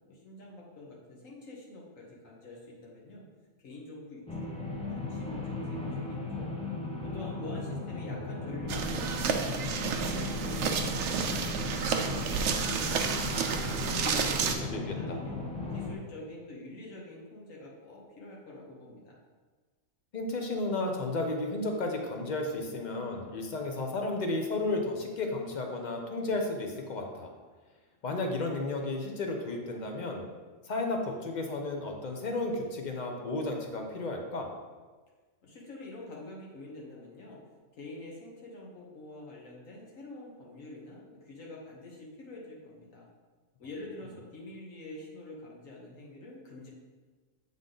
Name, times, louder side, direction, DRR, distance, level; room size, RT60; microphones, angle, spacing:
voice 1, 0.1-3.2 3.6-6.4 7.0-9.8 10.1-13.3 13.9-15.4 15.7-19.2 35.4-37.4 37.8-43.1 43.6-46.7, left 2 dB, 75° left, -3 dB, 1.4 m, -46 dB
sound 1, 4.3-16.0, left 3 dB, 10° left, 0.4 m, -36 dB
sound 2, 8.7-14.6, right 6 dB, 70° right, 0.8 m, -31 dB
voice 2, 14.7-15.2 20.1-27.3 28.0-30.2 30.7-34.5, left 2 dB, 40° left, 2 dB, 0.7 m, -33 dB
7.6 x 3.7 x 3.8 m, 1.4 s
omnidirectional pair, 1.4 m